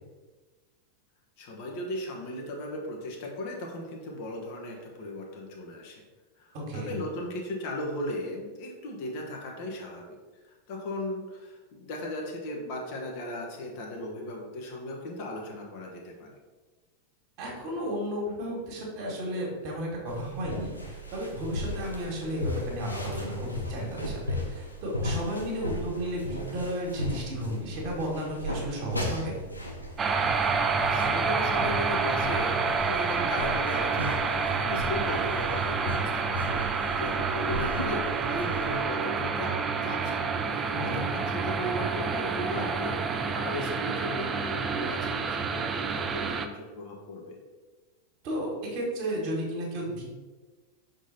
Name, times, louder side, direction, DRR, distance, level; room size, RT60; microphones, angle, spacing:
voice 1, 1.4-6.0 6.4-10.0 10.4-16.3 30.6-43.0 43.3-47.4, left 1 dB, 45° left, 0 dB, 1.2 m, -37 dB
voice 2, 6.5-7.0 17.4-29.3 40.7-41.2 48.2-50.0, equal, 45° right, -2 dB, 1.9 m, -33 dB
sound 1, 20.1-38.8, left 1 dB, 85° left, 0.9 m, -37 dB
sound 2, 30.0-46.5, right 5 dB, 20° right, 0.4 m, -28 dB
6.1 x 3.9 x 4.1 m, 1.3 s
figure-of-eight pair, 90°, 0 cm